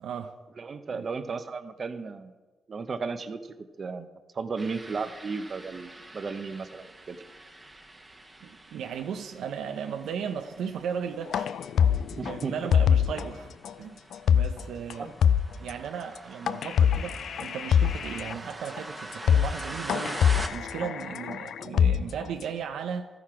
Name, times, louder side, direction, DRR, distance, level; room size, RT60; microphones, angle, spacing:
voice 1, 0.0-0.4 0.9-1.1 8.4-11.5 12.2-13.5 13.8-14.0 14.3-15.1 15.6-20.2 20.5-23.1, right 7 dB, 80° right, 6 dB, 0.6 m, -36 dB
voice 2, 0.6-2.3 2.7-3.4 3.8-4.1 4.3-7.2 12.2-12.7 15.0-15.1, right 4 dB, 45° right, 9 dB, 0.8 m, -34 dB
sound 1, 4.6-20.5, right 2 dB, 20° right, 1.2 m, -44 dB
sound 2, 11.3-13.3 13.6-13.7 14.1-14.6 14.9-15.0 15.2-15.7 16.5-18.3 18.8-18.9 19.1-19.6 19.9-22.4, left 8 dB, 75° left, 0.3 m, -24 dB
13.5 x 5.9 x 4.9 m, 1.2 s
cardioid pair, 75°, 0 cm